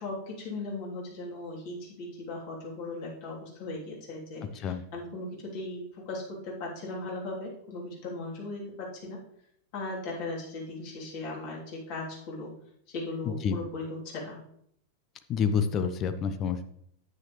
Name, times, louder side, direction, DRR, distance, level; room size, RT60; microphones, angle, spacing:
voice 1, 0.0-9.2 9.7-12.5 12.9-14.4, left 2 dB, 45° left, -4 dB, 3.2 m, -38 dB
voice 2, 15.3-16.6, left 6 dB, 30° left, 10 dB, 0.8 m, -28 dB
9.5 x 8.5 x 3.2 m, 0.69 s
figure-of-eight pair, 90°, 0 cm